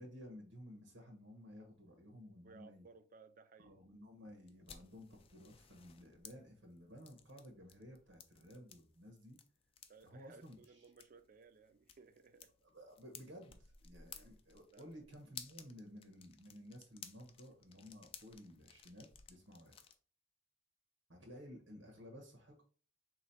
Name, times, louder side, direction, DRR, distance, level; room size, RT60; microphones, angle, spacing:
voice 1, 0.0-2.9 3.6-9.4 10.0-10.9 12.6-19.8 21.1-22.6, equal, 90° right, 1.2 m, -55 dB
voice 2, 2.4-3.8 9.9-12.5 14.1-14.3 14.7-14.9, right 4 dB, 45° right, 0.4 m, -61 dB
sound 1, 4.5-19.9, left 7 dB, 30° left, 0.4 m, -58 dB
3.8 x 3.1 x 4.1 m
head